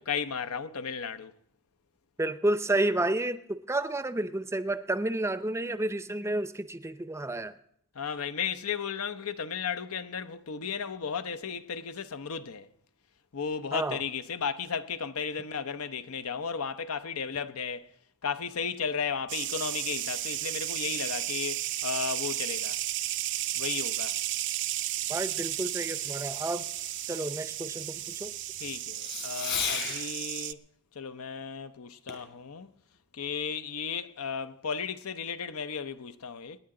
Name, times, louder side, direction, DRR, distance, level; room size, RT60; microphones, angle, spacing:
voice 1, 0.0-1.3 7.9-12.7 13.3-17.9 18.2-22.8 23.6-24.2 28.6-30.6 30.9-32.7 33.1-36.6, left 6 dB, 85° left, 0.7 m, -34 dB
voice 2, 2.2-7.5 13.7-14.0 25.1-26.7 27.1-28.4, right 2 dB, 15° right, 0.5 m, -30 dB
Fireworks, 19.1-30.1 32.1-32.4 32.9-33.0, left 7 dB, 60° left, 3.8 m, -42 dB
sound 1, 19.3-30.5, right 14 dB, 60° right, 0.5 m, -33 dB
27.0 x 10.0 x 3.8 m
head